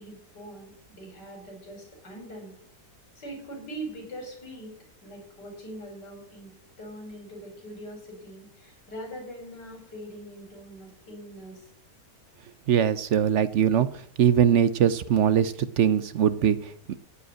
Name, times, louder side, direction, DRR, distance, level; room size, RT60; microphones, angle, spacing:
voice 1, 0.0-2.5 3.2-4.7 5.0-11.7, right 1 dB, 85° left, 1 dB, 5.5 m, -42 dB
voice 2, 12.7-13.9 14.2-17.0, right 9 dB, 60° right, 15 dB, 0.8 m, -22 dB
15.0 x 5.3 x 9.7 m, 0.63 s
omnidirectional pair, 1.8 m